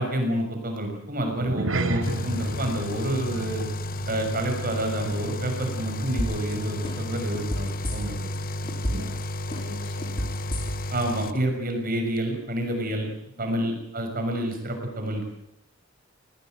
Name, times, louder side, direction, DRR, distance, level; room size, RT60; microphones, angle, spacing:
voice 1, 0.0-3.6 4.1-8.4 8.9-9.1 10.9-13.1 13.4-15.2, right 1 dB, 45° right, 4 dB, 6.4 m, -28 dB
sound 1, 1.3-6.0 6.2-6.5 7.0-7.1, right 2 dB, 75° right, 2.4 m, -33 dB
sound 2, 2.0-11.3, left 1 dB, 45° left, 1.1 m, -32 dB
sound 3, 6.2-6.5 6.8-8.4 8.7-9.2 9.5-11.0 11.3-11.4, equal, 25° left, 4.1 m, -30 dB
voice 2, 8.6-9.2 9.5-10.2 12.8-12.9 13.5-13.7, left 1 dB, 70° left, 4 dB, 7.0 m, -43 dB
20.5 x 19.0 x 9.2 m, 0.83 s
head